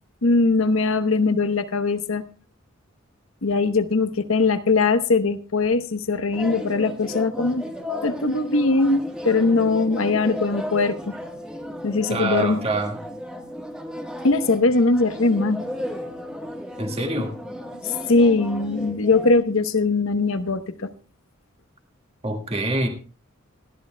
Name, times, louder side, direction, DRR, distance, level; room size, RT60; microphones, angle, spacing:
voice 1, 0.2-2.2 3.4-7.6 8.0-11.1 11.8-12.6 14.2-15.6 17.9-20.9, left 3 dB, 80° left, 1.0 m, -21 dB
sound 1, 6.3-19.4, left 1 dB, 5° right, 1.4 m, -34 dB
voice 2, 12.1-13.0 16.8-17.3 22.2-22.9, right 2 dB, 30° right, 1.8 m, -25 dB
19.5 x 13.5 x 2.2 m
head